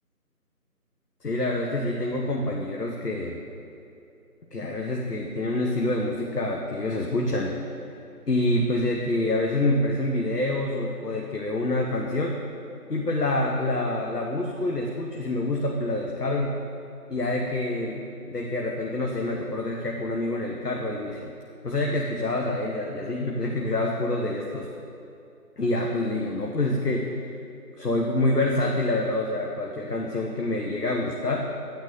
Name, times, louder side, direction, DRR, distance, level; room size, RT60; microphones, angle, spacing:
voice 1, 1.2-3.4 4.5-7.8 8.3-12.4 12.9-16.5 17.1-21.3 21.6-24.7 25.6-27.2 27.8-31.5, left 2 dB, 80° left, -1 dB, 1.0 m, -27 dB
11.0 x 8.9 x 2.6 m, 2.7 s
figure-of-eight pair, 175°, 46 cm